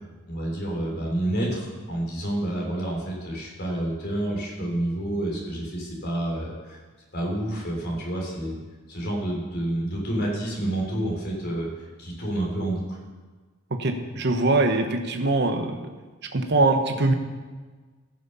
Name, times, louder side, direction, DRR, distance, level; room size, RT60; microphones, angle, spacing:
voice 1, 0.3-6.8 7.1-8.6 8.9-13.0, right 1 dB, 55° left, -2 dB, 3.7 m, -29 dB
voice 2, 13.8-15.8 16.3-17.1, right 2 dB, 55° right, 5 dB, 1.1 m, -22 dB
15.0 x 6.4 x 5.6 m, 1.4 s
head